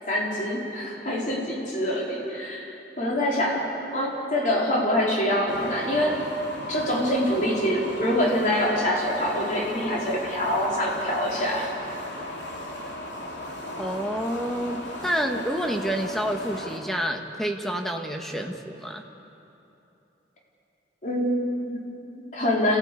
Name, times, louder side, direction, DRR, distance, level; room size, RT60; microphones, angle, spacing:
voice 1, 0.1-2.7 3.0-3.6 3.9-6.2 6.7-11.7 21.0-22.8, left 1 dB, 45° left, -3 dB, 4.1 m, -25 dB
sound 1, 5.5-16.8, left 1 dB, 75° left, 2.9 m, -37 dB
voice 2, 13.8-19.0, equal, ahead, 3 dB, 1.3 m, -28 dB
27.0 x 16.5 x 8.4 m, 2.9 s
head